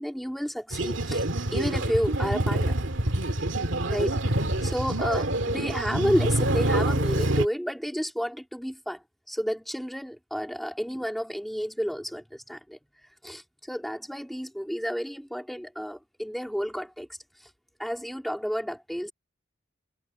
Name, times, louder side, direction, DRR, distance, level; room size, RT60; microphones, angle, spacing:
voice 1, 0.0-2.8 3.8-4.1 4.6-12.8 13.2-17.5 17.8-19.1, equal, ahead, 2.9 m, -31 dB
Mixture of megaphone loop sound in chinese street (Songpan), 0.7-7.5, right 1 dB, 70° right, 2.2 m, -26 dB
head